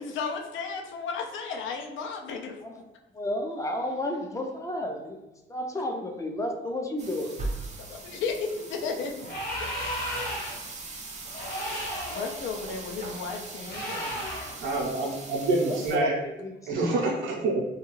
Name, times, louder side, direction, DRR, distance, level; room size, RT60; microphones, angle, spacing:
voice 1, 0.0-2.6 7.8-9.2 9.6-9.7 12.1-14.3, left 5 dB, 75° left, 2 dB, 0.5 m, -34 dB
voice 2, 3.1-5.2 5.5-7.5 15.7-16.9, left 1 dB, 15° left, 3 dB, 0.4 m, -32 dB
sound 1, 7.0-16.0, right 3 dB, 35° right, 0.5 m, -40 dB
sound 2, 9.2-10.7 11.3-12.3 13.7-14.6, equal, 50° left, 1.0 m, -33 dB
voice 3, 14.6-16.2 16.7-17.6, right 2 dB, 80° right, -1 dB, 0.7 m, -26 dB
2.3 x 2.3 x 3.0 m, 1.0 s
cardioid pair, 90°, 20 cm